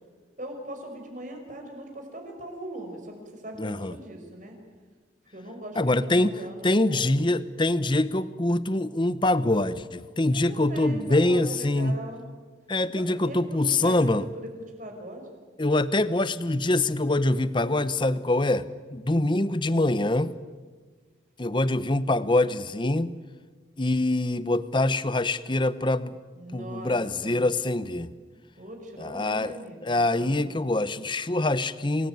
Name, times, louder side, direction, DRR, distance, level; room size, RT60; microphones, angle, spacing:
voice 1, 0.4-4.6 5.3-7.2 10.3-12.3 12.9-14.5 14.8-15.3 26.3-26.9 27.2-27.5 28.6-30.6, right 1 dB, 40° right, 3 dB, 5.9 m, -40 dB
voice 2, 3.6-3.9 5.8-6.3 6.6-11.9 12.7-14.3 15.6-20.3 21.4-23.1 23.8-26.1 26.5-28.1 29.0-29.6 29.8-32.1, left 2 dB, 25° left, 15 dB, 0.8 m, -24 dB
28.0 x 20.0 x 9.3 m, 1.5 s
head